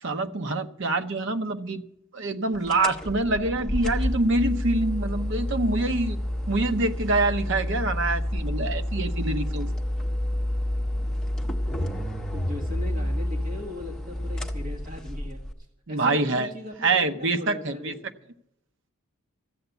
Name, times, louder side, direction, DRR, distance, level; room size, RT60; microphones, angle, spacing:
voice 1, 0.0-1.8 2.1-6.2 6.5-9.7 15.9-16.5 16.8-17.9, right 2 dB, 60° right, 0.8 m, -25 dB
sound 1, 2.7-15.5, left 1 dB, 5° left, 1.0 m, -29 dB
voice 2, 12.3-15.4 15.9-18.0, left 3 dB, 40° right, 1.9 m, -39 dB
13.5 x 8.0 x 8.0 m
head